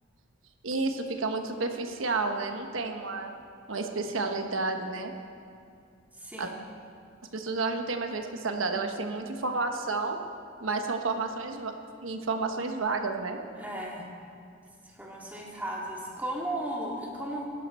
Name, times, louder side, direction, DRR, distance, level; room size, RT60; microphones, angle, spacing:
voice 1, 0.6-3.3 3.7-5.1 6.4-6.5 7.3-10.2 10.6-11.7 12.0-13.4, right 3 dB, 85° right, 5 dB, 1.1 m, -31 dB
voice 2, 6.2-6.6 13.6-14.1 14.8-17.4, right 1 dB, 10° right, -3 dB, 2.0 m, -35 dB
17.0 x 11.5 x 4.3 m, 2.5 s
head